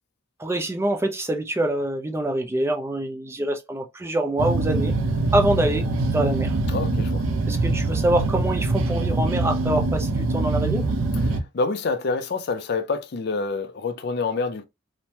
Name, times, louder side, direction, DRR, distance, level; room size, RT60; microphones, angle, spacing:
voice 1, 0.4-4.9 5.3-6.6 7.5-10.8, right 1 dB, 10° right, 0.3 m, -25 dB
sound 1, 4.4-11.4, right 2 dB, 75° right, 0.5 m, -23 dB
voice 2, 6.7-7.2 11.3-14.6, left 4 dB, 50° left, 0.4 m, -27 dB
3.0 x 2.1 x 2.7 m
head